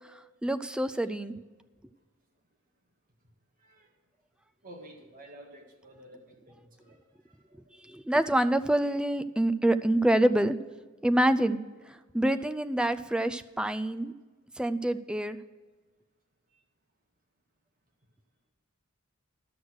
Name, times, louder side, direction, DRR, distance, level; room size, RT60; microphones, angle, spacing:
voice 1, 0.0-1.3 7.8-10.5 11.0-11.6 11.9-14.1 14.6-15.4, right 1 dB, 5° right, 12 dB, 0.3 m, -26 dB
voice 2, 3.6-3.9 4.6-7.0 7.5-7.8, right 1 dB, 40° right, 1 dB, 1.9 m, -51 dB
12.0 x 6.4 x 6.3 m, 1.3 s
head